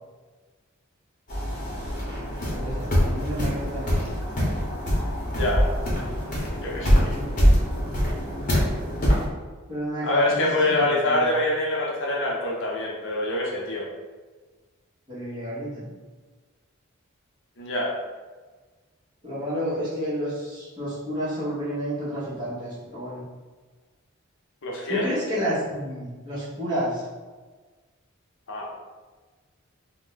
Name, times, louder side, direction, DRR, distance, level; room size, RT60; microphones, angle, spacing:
sound 1, 1.3-9.2, equal, 40° left, 0.9 m, -24 dB
voice 1, 2.5-4.1 6.7-7.3 7.7-7.9 9.7-11.2 15.1-15.9 19.2-23.2 24.9-27.1, equal, 20° right, -10 dB, 1.0 m, -31 dB
voice 2, 6.6-7.2 10.0-13.9 17.6-17.9 24.6-25.1 28.5-28.7, left 1 dB, 60° left, -2 dB, 0.6 m, -25 dB
2.6 x 2.1 x 3.8 m, 1.3 s
head